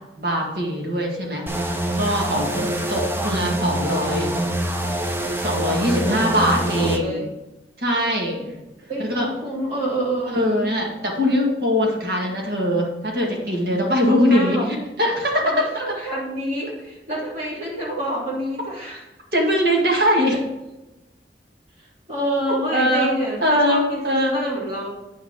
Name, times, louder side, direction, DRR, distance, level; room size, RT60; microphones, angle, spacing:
voice 1, 0.2-4.3 5.4-7.3 7.8-8.6 9.0-9.3 10.3-15.9 19.3-20.4 22.7-23.1 23.4-24.4, equal, 60° right, -1 dB, 1.9 m, -22 dB
sound 1, 1.5-7.0, right 1 dB, 15° right, 0.6 m, -25 dB
voice 2, 5.8-7.2 8.9-10.7 14.3-14.7 15.4-19.0 20.3-20.4 22.1-24.9, right 1 dB, 35° right, -5 dB, 3.0 m, -28 dB
8.8 x 6.3 x 3.8 m, 1.0 s
head